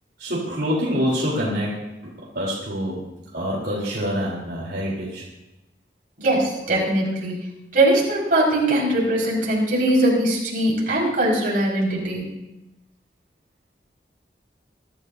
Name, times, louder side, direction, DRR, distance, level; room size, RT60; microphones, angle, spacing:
voice 1, 0.2-1.9 2.3-3.0 3.3-5.2, equal, 65° right, -6 dB, 3.6 m, -26 dB
voice 2, 6.2-7.4 7.7-12.2, right 1 dB, 50° right, -4 dB, 5.1 m, -21 dB
23.0 x 13.0 x 2.7 m, 0.96 s
head